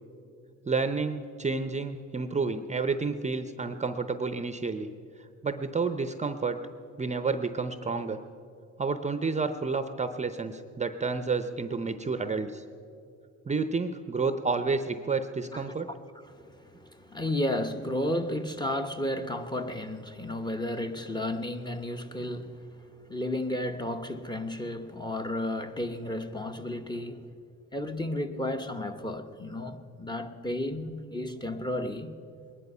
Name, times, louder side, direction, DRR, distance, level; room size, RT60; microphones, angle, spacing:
voice 1, 0.7-4.9 5.4-6.6 7.0-8.2 8.8-12.6 13.5-15.9, right 4 dB, 25° right, 0.6 m, -30 dB
voice 2, 16.2-27.3 27.7-32.2, left 1 dB, 15° left, 1.0 m, -33 dB
21.0 x 10.5 x 5.5 m
cardioid pair, 90°, 30 cm